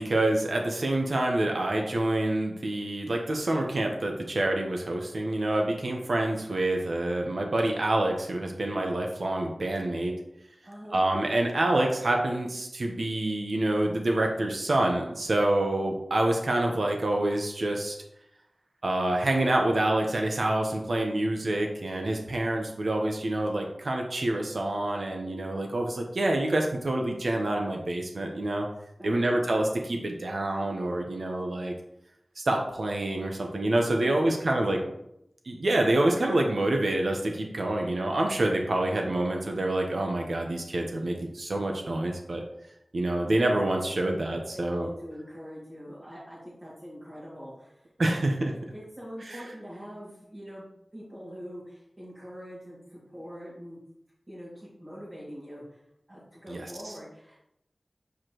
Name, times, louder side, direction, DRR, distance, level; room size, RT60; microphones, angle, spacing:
voice 1, 0.0-10.2 10.9-17.9 18.8-28.7 29.0-31.7 32.4-34.8 35.5-42.4 42.9-44.9 48.0-48.5 49.3-49.4 56.5-56.9, right 1 dB, 80° right, 2 dB, 0.9 m, -27 dB
voice 2, 10.6-11.0 29.0-29.3 33.9-34.6 44.5-48.1 48.5-50.7 50.9-53.8 54.3-55.8 56.1-57.4, equal, 30° right, -10 dB, 2.4 m, -43 dB
8.2 x 4.9 x 3.0 m, 0.80 s
wide cardioid pair, 70°, 0 cm